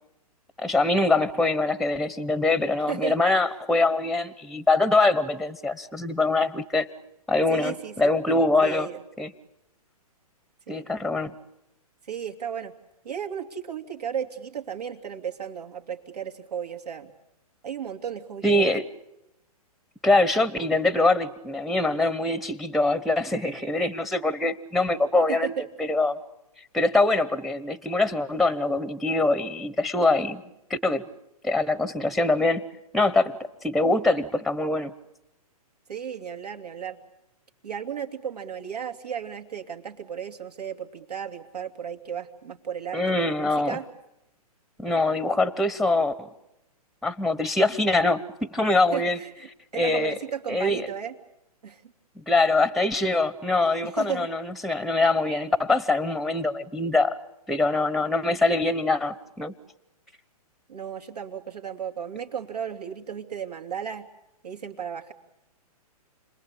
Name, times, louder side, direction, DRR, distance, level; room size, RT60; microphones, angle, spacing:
voice 1, 0.6-6.9 7.3-8.9 9.2-9.3 10.7-11.3 18.4-18.8 20.0-25.5 25.9-26.2 26.7-30.4 30.7-31.0 31.4-32.6 32.9-34.9 42.9-43.8 44.8-46.3 47.0-49.2 49.8-50.1 50.5-50.8 52.2-57.1 57.5-59.5, left 2 dB, ahead, 17 dB, 0.9 m, -23 dB
voice 2, 2.9-3.2 7.5-8.1 8.6-9.0 10.7-10.9 12.0-12.7 13.0-17.1 17.6-18.7 25.3-25.6 35.9-37.0 37.6-43.9 48.9-51.1 51.6-51.8 53.8-54.3 60.7-64.1 64.4-65.1, right 8 dB, 80° right, 5 dB, 2.9 m, -34 dB
30.0 x 21.0 x 8.9 m, 0.87 s
hypercardioid pair, 130°, 20 cm